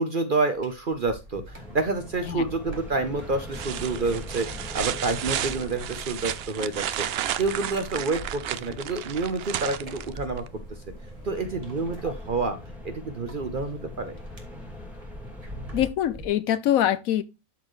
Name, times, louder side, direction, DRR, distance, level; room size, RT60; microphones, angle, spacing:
voice 1, 0.0-7.1 7.4-10.4 11.2-12.6 12.8-14.1, right 3 dB, 45° right, 0.8 m, -28 dB
sound 1, 0.5-16.3, equal, 25° right, 1.8 m, -46 dB
sound 2, 1.5-15.9, left 1 dB, ahead, 2.3 m, -42 dB
sound 3, 2.7-3.1 3.5-10.5 12.3-12.4, right 11 dB, 75° right, 0.5 m, -33 dB
voice 2, 15.7-17.2, left 11 dB, 70° left, 1.0 m, -24 dB
12.5 x 4.4 x 3.1 m
omnidirectional pair, 1.6 m